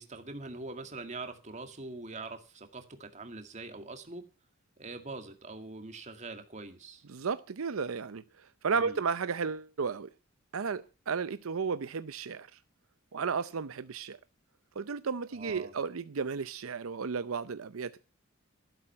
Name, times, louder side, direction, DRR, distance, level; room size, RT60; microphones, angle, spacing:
voice 1, 0.0-4.2 4.8-7.0 8.8-9.0 15.3-15.7, right 3 dB, 35° right, 2.1 m, -43 dB
voice 2, 7.1-8.2 8.6-10.1 10.5-12.5 13.1-14.2 14.8-18.0, right 5 dB, 85° right, 0.6 m, -33 dB
13.0 x 12.0 x 5.7 m
head